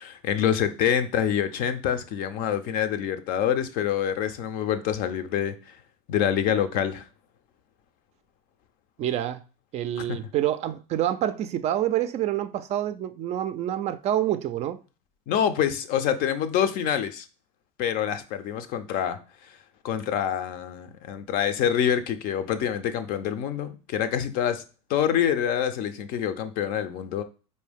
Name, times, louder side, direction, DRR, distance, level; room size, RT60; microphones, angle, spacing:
voice 1, 0.0-5.5 6.1-7.1 10.0-10.2 15.3-17.3 17.8-19.2 19.8-24.6 24.9-27.2, left 9 dB, 55° left, 0.5 m, -26 dB
voice 2, 9.0-9.4 9.7-14.8, right 12 dB, 40° right, 0.4 m, -27 dB
4.4 x 2.7 x 3.4 m
hypercardioid pair, 100°, 18 cm